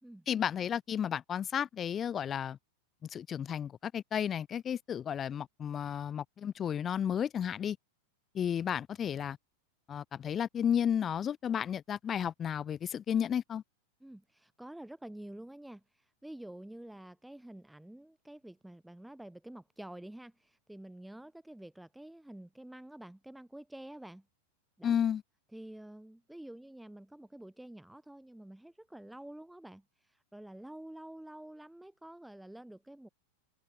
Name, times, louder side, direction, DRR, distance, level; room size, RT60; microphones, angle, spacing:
voice 1, 0.3-2.6 3.0-7.8 8.3-9.4 9.9-13.6 24.8-25.2, left 8 dB, 25° left, 2.1 m, -33 dB
voice 2, 14.0-24.2 24.8-24.9 25.5-33.1, right 1 dB, 5° right, 4.7 m, -49 dB
figure-of-eight pair, 90°, 0 cm